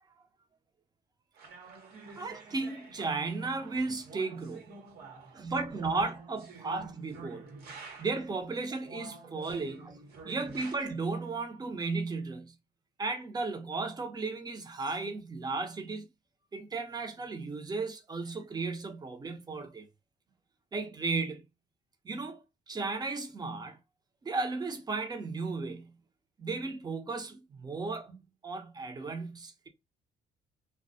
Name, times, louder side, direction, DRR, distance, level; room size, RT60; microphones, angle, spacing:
sound 1, 1.4-8.3 8.8-10.8, right 4 dB, 65° right, 1.1 m, -49 dB
voice 1, 2.2-4.7 5.3-7.5 8.0-10.0 10.2-12.5 13.0-16.1 16.5-19.9 20.7-21.4 22.0-23.8 24.2-25.9 26.4-28.2 28.4-29.7, right 3 dB, 25° right, 0.7 m, -35 dB
2.2 x 2.2 x 2.6 m
cardioid pair, 110°, 17 cm